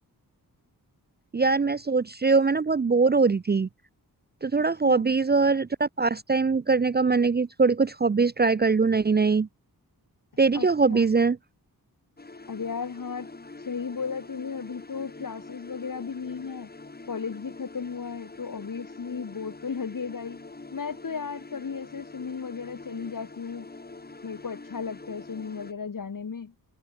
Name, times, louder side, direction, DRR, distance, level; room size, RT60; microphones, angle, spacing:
voice 1, 1.3-3.7 4.4-9.5 10.4-11.4, right 4 dB, 25° right, 0.5 m, -22 dB
voice 2, 10.5-11.1 12.5-13.3 13.6-16.7 17.1-20.4 20.7-23.7 24.2-26.5, left 5 dB, 55° left, 4.9 m, -35 dB
sound 1, 12.2-25.7, left 3 dB, 25° left, 3.8 m, -45 dB
wide cardioid pair, 145°, 38 cm